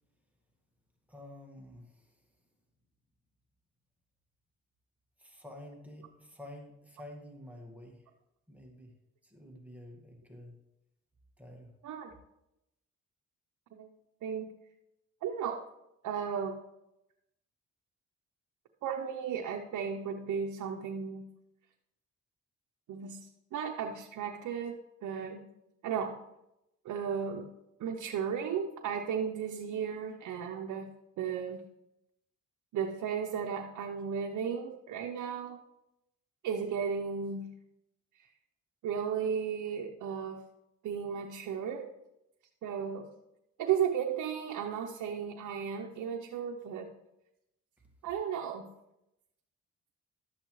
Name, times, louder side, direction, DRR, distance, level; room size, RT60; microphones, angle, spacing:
voice 1, 1.1-2.2 5.2-8.0 8.5-8.9 9.2-10.6 11.4-11.7, left 1 dB, 5° right, 0 dB, 1.7 m, -49 dB
voice 2, 15.2-15.6 16.0-16.6 18.8-21.3 22.9-25.4 25.8-26.2 26.8-27.5 27.8-30.9 31.2-31.6 32.7-35.6 36.4-37.5 38.2-38.3 38.8-40.4 40.8-41.9 42.6-43.1 43.6-46.9 48.0-48.7, right 7 dB, 90° right, 2 dB, 0.8 m, -34 dB
11.5 x 8.0 x 3.1 m, 0.87 s
cardioid pair, 90°, 30 cm